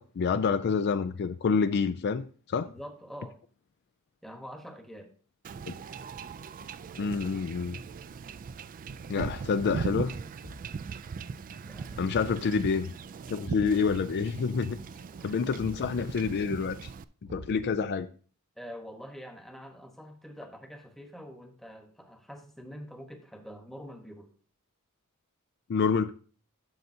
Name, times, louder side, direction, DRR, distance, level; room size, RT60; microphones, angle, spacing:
voice 1, 0.0-2.7 5.7-5.8 7.0-7.8 9.1-10.1 12.0-12.9 13.3-14.8 15.2-16.9 17.3-18.1 25.7-26.1, left 5 dB, 50° left, 0.4 m, -28 dB
voice 2, 2.6-3.4 4.2-5.1 11.6-12.1 15.2-15.4 18.6-24.3, equal, ahead, 1.1 m, -45 dB
Wind / Ocean / Boat Water vehicle, 5.4-17.0, right 5 dB, 40° right, 0.3 m, -39 dB
Thump thud, 10.4-10.9 12.1-12.5 13.8-14.2 15.5-15.9 17.2-17.8, equal, 55° right, 1.1 m, -46 dB
12.0 x 6.7 x 2.8 m
head